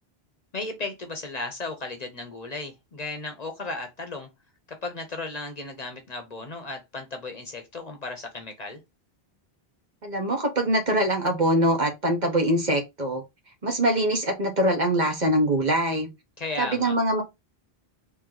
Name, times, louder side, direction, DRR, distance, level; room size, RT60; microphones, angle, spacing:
voice 1, 0.5-4.3 4.7-8.8 16.4-17.0, left 3 dB, 45° left, 0.8 m, -35 dB
voice 2, 10.0-13.2 13.6-16.1 16.6-17.2, right 1 dB, 45° right, 1.2 m, -23 dB
3.1 x 3.0 x 3.7 m
omnidirectional pair, 1.0 m